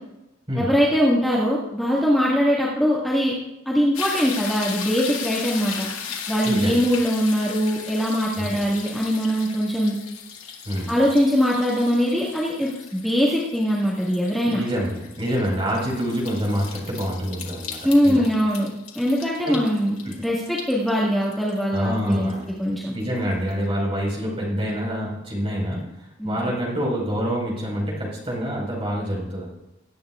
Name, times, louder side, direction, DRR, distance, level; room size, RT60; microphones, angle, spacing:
voice 1, 0.6-3.3 3.7-5.9 6.3-10.0 10.9-14.6 17.8-18.7 19.0-22.3 22.6-22.9 26.2-26.4, equal, ahead, -7 dB, 1.8 m, -22 dB
sound 1, 3.9-23.0 23.5-23.6, left 7 dB, 75° left, 1.9 m, -37 dB
voice 2, 6.4-6.8 8.4-8.6 10.6-11.0 14.4-17.8 18.0-18.2 19.4-19.6 20.0-20.1 21.7-22.5 22.9-25.9 26.2-29.5, equal, 25° right, -4 dB, 4.8 m, -26 dB
21.5 x 9.6 x 2.4 m, 0.92 s
head